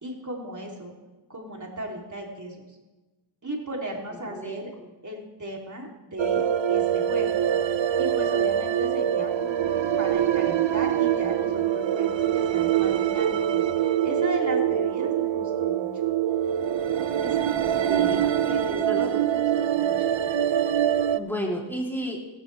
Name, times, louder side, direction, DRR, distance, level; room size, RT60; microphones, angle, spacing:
voice 1, 0.0-0.9 1.3-2.6 3.4-4.7 5.0-6.4 6.7-7.4 8.0-15.9 17.2-18.1 18.4-20.2, right 1 dB, 40° right, -1 dB, 3.3 m, -36 dB
voice 2, 4.3-4.9 17.9-18.3 18.8-19.2 21.1-22.3, equal, 5° left, -2 dB, 3.3 m, -32 dB
sound 1, 6.2-21.2, right 10 dB, 75° right, 0.7 m, -24 dB
16.5 x 14.5 x 3.4 m, 1.2 s
wide cardioid pair, 60°, 46 cm